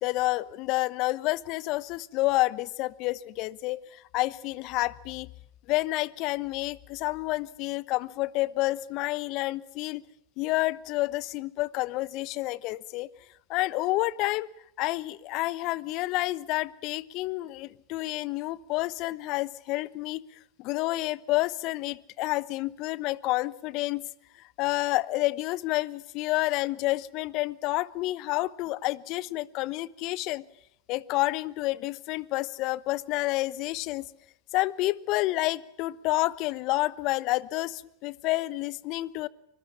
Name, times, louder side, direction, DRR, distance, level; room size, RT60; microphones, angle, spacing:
voice 1, 0.0-5.3 5.7-10.0 10.4-13.1 13.5-14.5 14.8-20.2 20.6-24.0 24.6-30.4 30.9-34.1 34.5-39.3, left 19 dB, 55° left, 20 dB, 1.0 m, -29 dB
25.0 x 22.0 x 7.1 m, 0.76 s
hypercardioid pair, 90°, 0 cm